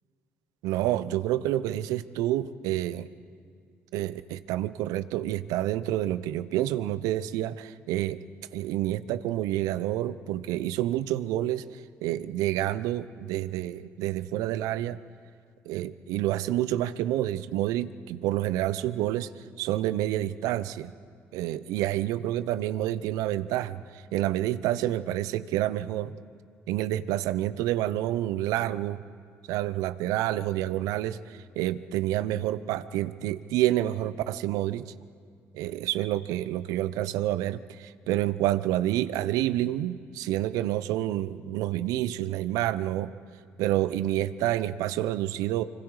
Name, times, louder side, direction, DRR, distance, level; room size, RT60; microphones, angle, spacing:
voice 1, 0.6-3.1 3.9-8.2 8.5-11.6 12.0-15.0 15.7-19.3 19.6-20.9 21.3-26.1 26.7-29.0 29.5-34.9 35.5-43.1 43.6-45.6, right 14 dB, 75° right, 15 dB, 0.8 m, -28 dB
25.5 x 25.5 x 4.9 m, 2.2 s
hypercardioid pair, 55°, 6 cm